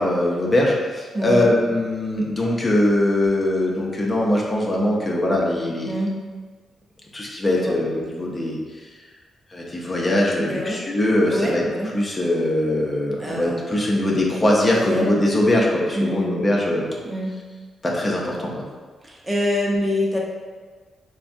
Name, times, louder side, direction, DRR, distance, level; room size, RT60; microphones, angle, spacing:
voice 1, 0.0-5.9 7.1-8.6 9.5-11.6 11.9-16.8 17.8-18.6, left 1 dB, 30° left, -3 dB, 0.7 m, -21 dB
voice 2, 1.1-1.5 5.8-6.1 7.5-7.7 10.4-10.8 11.3-11.9 13.2-13.7 14.7-15.1 15.9-16.3 17.0-17.3 19.0-20.2, left 1 dB, 30° right, -3 dB, 0.7 m, -25 dB
3.3 x 2.2 x 2.5 m, 1.4 s
supercardioid pair, 45°, 0 cm